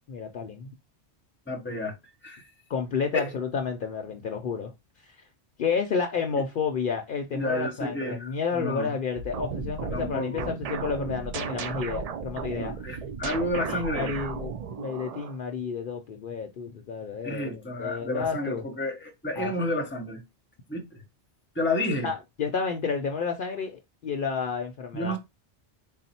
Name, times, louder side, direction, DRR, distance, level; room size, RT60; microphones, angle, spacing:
voice 1, 0.1-0.7 2.7-4.7 5.0-5.2 5.6-12.7 13.7-14.5 14.8-18.7 19.4-19.5 22.0-25.2, left 5 dB, 60° left, 0.6 m, -31 dB
voice 2, 1.5-2.0 2.2-2.5 3.1-3.3 6.3-6.4 7.3-8.9 9.9-10.5 12.5-14.1 17.2-20.2 20.7-21.0 21.5-22.1 24.9-25.2, left 1 dB, 10° left, 0.7 m, -31 dB
sound 1, 9.2-15.4, right 6 dB, 60° right, 0.4 m, -35 dB
4.1 x 2.0 x 4.1 m
omnidirectional pair, 1.1 m